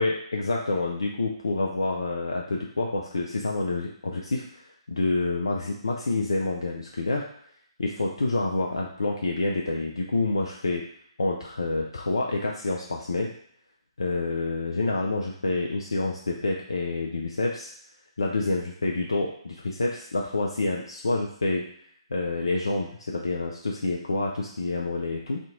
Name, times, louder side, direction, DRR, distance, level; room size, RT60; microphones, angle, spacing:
voice 1, 0.0-7.2 7.8-10.8 11.2-13.3 14.0-17.7 18.2-21.7 22.1-25.4, left 2 dB, 65° left, -1 dB, 0.4 m, -28 dB
2.8 x 2.5 x 3.6 m, 0.66 s
figure-of-eight pair, 130°, 3 cm